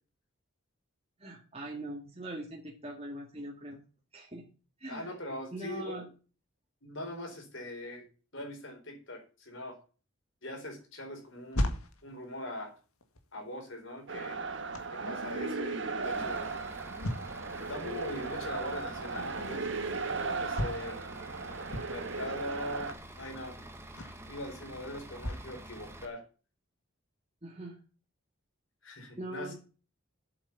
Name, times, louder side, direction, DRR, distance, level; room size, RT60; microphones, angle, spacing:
voice 1, 1.2-3.8 4.1-4.4 4.8-5.1 5.5-6.1 27.4-27.8 29.2-29.6, right 1 dB, 30° right, -1 dB, 1.9 m, -41 dB
voice 2, 4.9-6.1 6.8-8.1 8.3-9.8 10.4-11.7 12.0-12.8 13.3-14.4 14.9-16.5 17.7-21.1 21.9-23.7 24.3-26.2 28.8-29.6, left 1 dB, 60° left, 3 dB, 4.5 m, -42 dB
sound 1, 11.2-25.5 26.1-26.2, left 1 dB, 85° left, 1.9 m, -40 dB
sound 2, 14.1-22.9, right 4 dB, 60° right, 1.3 m, -36 dB
Bus / Idling, 16.0-26.1, right 1 dB, 10° right, 1.4 m, -48 dB
8.2 x 7.9 x 7.1 m, 0.36 s
head